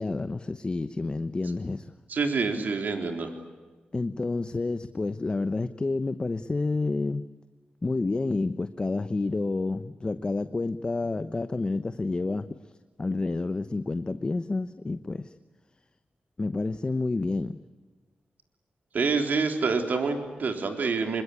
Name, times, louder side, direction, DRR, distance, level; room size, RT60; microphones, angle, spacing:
voice 1, 0.0-1.9 3.9-7.2 7.8-12.5 13.0-15.3 16.4-17.6, left 3 dB, 30° left, 11 dB, 1.0 m, -29 dB
voice 2, 2.1-3.3 18.9-21.2, right 4 dB, 70° right, 5 dB, 3.8 m, -27 dB
25.0 x 23.0 x 9.9 m, 1.3 s
cardioid pair, 85°, 3 cm